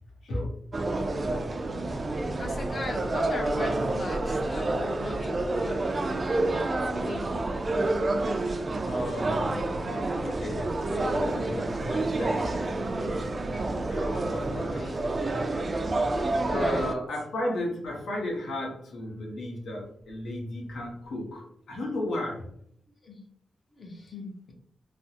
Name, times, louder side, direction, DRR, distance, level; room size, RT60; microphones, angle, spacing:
voice 1, 0.2-0.5 8.8-9.9 10.2-12.6 12.9-13.3 13.9-15.1 16.4-22.5, left 1 dB, 80° left, -1 dB, 0.9 m, -34 dB
sound 1, 0.7-16.9, right 2 dB, 35° right, 0.3 m, -29 dB
voice 2, 2.4-7.4 14.5-15.0 16.4-16.9 23.0-23.2 23.7-24.5, left 2 dB, 45° left, 1 dB, 0.7 m, -39 dB
3.2 x 2.0 x 2.7 m, 0.68 s
wide cardioid pair, 110°, 0 cm